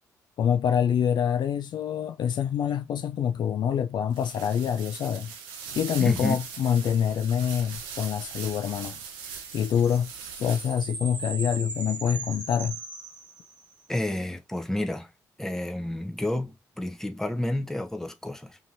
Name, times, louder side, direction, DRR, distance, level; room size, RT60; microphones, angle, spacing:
voice 1, 0.4-5.3 5.7-9.0 9.5-10.1 10.4-12.8, left 8 dB, 55° left, 0.3 m, -26 dB
sound 1, 4.1-11.0, right 6 dB, 85° right, 0.5 m, -41 dB
voice 2, 6.0-6.3 13.9-15.1 15.4-18.6, left 1 dB, 5° left, 0.7 m, -30 dB
sound 2, 9.4-13.9, right 3 dB, 55° right, 1.1 m, -39 dB
2.8 x 2.6 x 2.6 m
hypercardioid pair, 45°, 9 cm